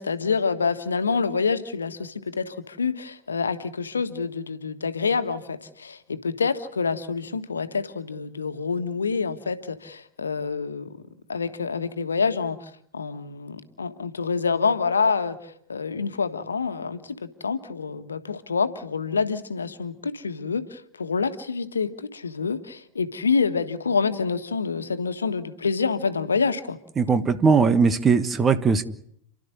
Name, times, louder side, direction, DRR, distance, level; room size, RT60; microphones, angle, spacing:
voice 1, 0.0-11.0 11.3-26.8, left 5 dB, 75° left, 10 dB, 1.5 m, -27 dB
voice 2, 27.0-28.8, right 5 dB, 20° right, 12 dB, 1.4 m, -19 dB
30.0 x 12.5 x 9.8 m, 0.69 s
figure-of-eight pair, 90°, 0 cm